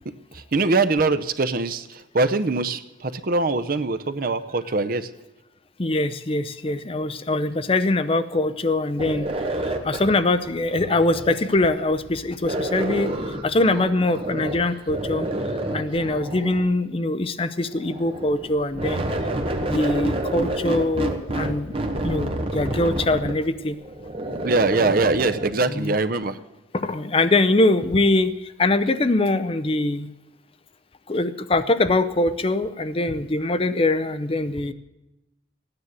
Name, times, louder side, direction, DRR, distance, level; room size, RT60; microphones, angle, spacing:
voice 1, 0.3-5.1 24.4-26.4, right 3 dB, 50° right, 11 dB, 0.7 m, -23 dB
voice 2, 5.8-9.3 9.6-13.1 13.4-15.3 15.7-19.0 19.6-21.7 22.0-23.8 25.7-25.9 26.7-30.1 31.1-34.7, left 2 dB, 30° left, 12 dB, 0.6 m, -23 dB
sound 1, 9.0-11.8 12.4-14.6 14.9-16.7 17.7-25.5, right 1 dB, 30° right, 1.2 m, -29 dB
14.5 x 9.8 x 8.0 m, 0.94 s
head